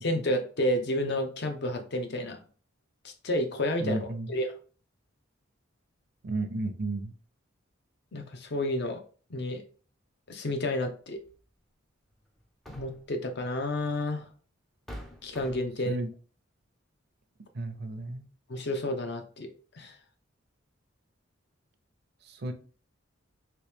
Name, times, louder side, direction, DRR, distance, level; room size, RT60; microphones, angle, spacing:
voice 1, 0.0-2.4 3.0-4.5 8.1-9.0 9.3-9.6 10.3-11.2 12.8-14.3 15.2-16.0 18.5-19.9, left 1 dB, 55° left, 0.6 m, -31 dB
voice 2, 3.8-4.4 6.2-7.1 15.9-16.1 17.5-18.3 22.2-22.5, right 2 dB, 50° right, 0.5 m, -33 dB
sound 1, 11.3-11.4 12.4-13.2 14.2-14.3 14.9-15.9, equal, ahead, 0.4 m, -45 dB
3.0 x 3.0 x 3.3 m
head